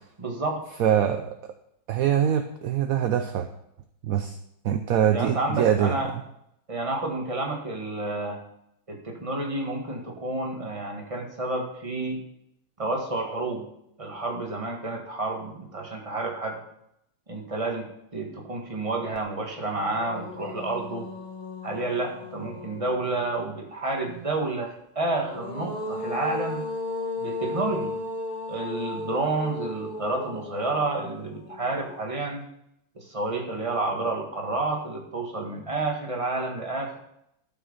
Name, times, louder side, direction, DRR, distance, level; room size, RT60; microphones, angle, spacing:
voice 1, 0.2-0.6 5.1-6.1 6.7-8.4 8.9-12.2 12.8-13.6 14.0-16.6 17.3-21.1 21.6-26.6 27.2-27.9 28.5-32.4 32.9-37.0, right 2 dB, 20° right, 1 dB, 1.7 m, -30 dB
voice 2, 0.8-1.5 1.9-3.5 4.0-4.4 4.6-6.0, right 9 dB, 65° right, 7 dB, 0.9 m, -23 dB
sound 1, 19.1-19.2 19.6-23.3 25.0-32.2, left 2 dB, 30° left, 1.3 m, -35 dB
13.0 x 5.9 x 5.5 m, 0.77 s
omnidirectional pair, 2.0 m